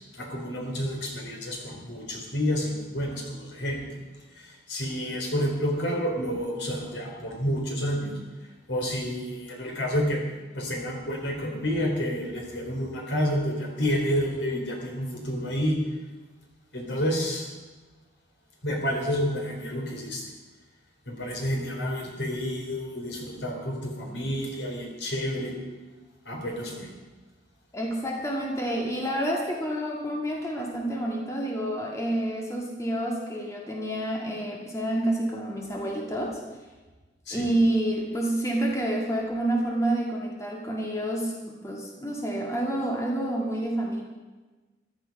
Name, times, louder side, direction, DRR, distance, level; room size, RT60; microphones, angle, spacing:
voice 1, 0.1-3.8 4.4-8.1 8.7-10.2 10.5-15.8 16.7-17.5 18.6-20.2 21.1-25.5 26.3-26.9 37.3-37.5, equal, 80° left, 1 dB, 3.7 m, -29 dB
voice 2, 27.7-36.4 37.3-44.0, right 1 dB, 15° left, -1 dB, 2.0 m, -28 dB
14.5 x 12.5 x 5.3 m, 1.2 s
head